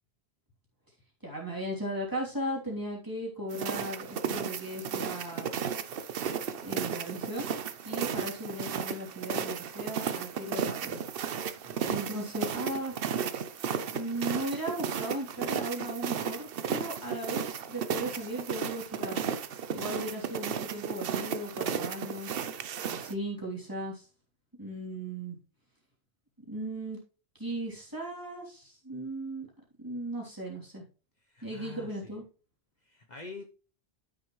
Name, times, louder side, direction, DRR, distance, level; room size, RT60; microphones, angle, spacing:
voice 1, 1.2-5.5 6.6-7.5 7.8-11.0 11.9-13.0 13.9-19.2 19.7-22.3 22.9-24.0 24.6-25.4 26.5-27.0 27.4-29.5 29.8-30.8 31.4-32.2, right 1 dB, 20° right, -3 dB, 3.0 m, -37 dB
sound 1, 3.5-23.1, right 7 dB, 65° right, 0.8 m, -34 dB
voice 2, 31.3-32.1 32.8-33.4, left 4 dB, 45° left, 3 dB, 1.0 m, -46 dB
12.0 x 6.1 x 3.1 m, 0.37 s
omnidirectional pair, 1.1 m